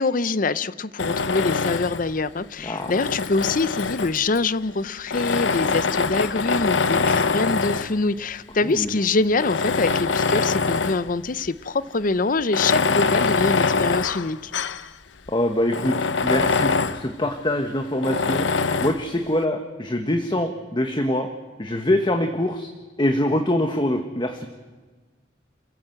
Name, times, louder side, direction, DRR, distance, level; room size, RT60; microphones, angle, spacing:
voice 1, 0.0-14.5, left 3 dB, 45° left, 16 dB, 0.7 m, -24 dB
Tools, 1.0-2.1 2.8-4.4 5.1-8.0 8.7-8.8 9.3-11.1 11.4-11.5 12.4-14.9 15.3-15.4 15.7-17.1 18.0-19.0, left 4 dB, 85° left, 0.8 m, -23 dB
voice 2, 2.6-2.9 8.6-9.0 15.3-18.5 18.8-21.3 21.6-22.7 23.0-24.5, left 1 dB, 25° left, 5 dB, 1.3 m, -24 dB
27.5 x 15.5 x 7.9 m, 1.3 s
head